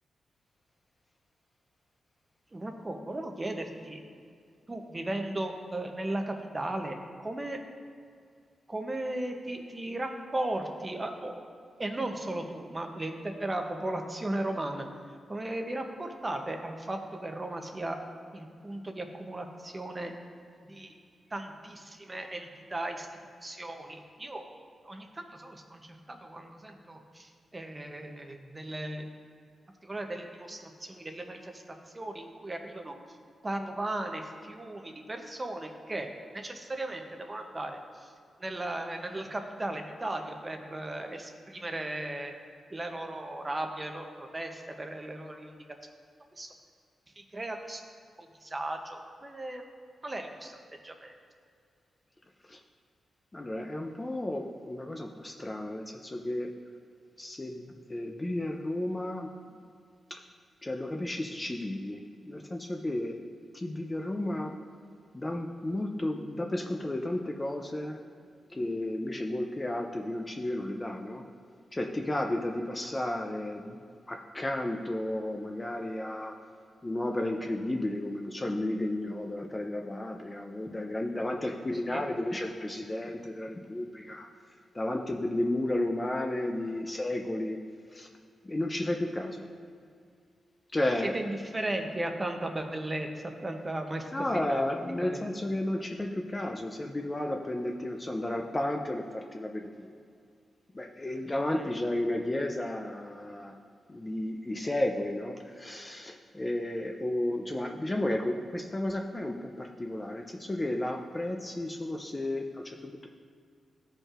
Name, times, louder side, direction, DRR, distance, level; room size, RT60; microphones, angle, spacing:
voice 1, 2.5-4.0 4.7-7.6 8.7-11.4 11.8-14.9 15.3-18.0 18.3-20.1 20.7-20.9 21.3-23.1 23.4-24.5 24.8-29.1 29.8-32.9 33.4-38.1 38.4-42.3 42.7-45.6 46.4-46.5 47.2-47.8 48.2-49.6 50.0-51.1 81.9-82.0 91.0-94.6 95.0-95.3 101.5-101.7, right 1 dB, 20° right, 4 dB, 0.7 m, -36 dB
voice 2, 53.3-56.5 57.2-59.3 60.1-60.2 60.6-63.2 63.5-64.6 65.1-68.0 68.5-71.2 71.7-73.8 74.1-76.3 76.8-84.3 84.7-87.6 87.9-88.1 88.4-89.5 90.7-91.1 94.1-99.9 100.7-103.5 103.9-113.1, left 1 dB, 15° left, 3 dB, 0.4 m, -33 dB
15.0 x 5.2 x 2.5 m, 2.2 s
wide cardioid pair, 150°, 0 cm